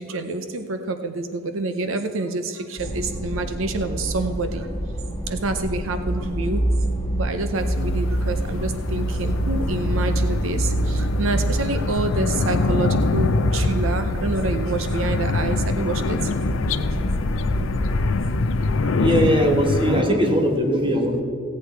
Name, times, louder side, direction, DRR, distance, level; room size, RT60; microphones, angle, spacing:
voice 1, 0.0-4.7 5.3-6.6 7.1-16.2 18.8-18.9, right 3 dB, 75° right, 8 dB, 0.7 m, -27 dB
sound 1, 2.8-18.0, right 1 dB, 15° left, 1.4 m, -26 dB
sound 2, 7.6-20.0, left 4 dB, 70° left, 0.5 m, -25 dB
voice 2, 19.0-21.2, equal, 25° right, 3 dB, 1.3 m, -20 dB
16.0 x 8.5 x 4.6 m, 2.5 s
head